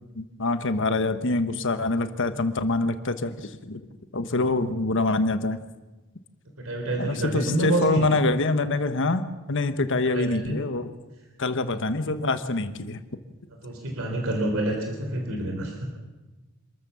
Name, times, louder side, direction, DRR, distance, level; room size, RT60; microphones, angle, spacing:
voice 1, 0.1-3.8 4.1-5.6 7.0-9.2 9.5-10.9 11.4-13.0, left 2 dB, 60° left, 10 dB, 1.3 m, -25 dB
voice 2, 6.6-8.0 10.1-10.5 13.6-15.9, right 1 dB, 65° right, 1 dB, 3.9 m, -27 dB
26.5 x 14.0 x 7.1 m, 1.2 s
head